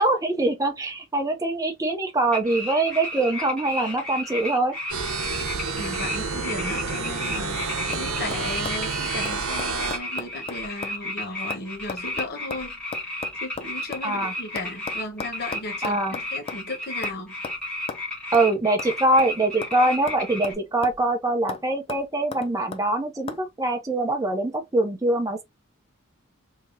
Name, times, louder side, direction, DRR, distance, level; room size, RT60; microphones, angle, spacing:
voice 1, 0.0-4.7 14.0-14.3 15.8-16.2 18.3-25.4, right 2 dB, 15° right, 0.6 m, -23 dB
sound 1, 2.3-6.2 6.4-20.5, left 1 dB, 5° left, 1.4 m, -33 dB
sound 2, 4.9-10.0, right 4 dB, 80° right, 0.8 m, -29 dB
voice 2, 5.8-12.8 13.4-17.3, left 2 dB, 50° left, 1.0 m, -35 dB
sound 3, 7.2-7.5 7.9-8.1 8.3-11.0 11.3-14.1 14.6-16.7 17.0-17.2 17.4-17.6 17.9-18.0 18.3-18.5 18.8-19.8 20.1-21.1 21.5-21.6 21.9-22.8 23.3-23.4, left 5 dB, 25° left, 0.4 m, -37 dB
3.3 x 2.8 x 2.6 m
head